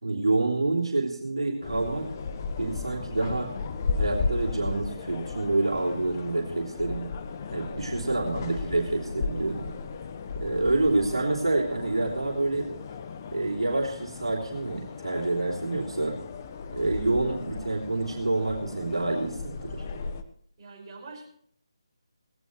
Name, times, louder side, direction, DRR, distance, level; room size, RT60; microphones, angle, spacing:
voice 1, 0.0-2.1 2.6-3.5 3.9-7.1 7.5-9.7 10.3-12.7 13.3-16.2 16.7-19.8, right 2 dB, 70° right, -2 dB, 3.1 m, -27 dB
sound 1, 1.6-20.2, left 4 dB, 30° left, 1.0 m, -35 dB
voice 2, 6.4-6.9 8.0-8.5 20.6-21.3, right 3 dB, 30° right, -3 dB, 5.5 m, -47 dB
18.0 x 16.0 x 3.1 m, 0.64 s
figure-of-eight pair, 155°, 3 cm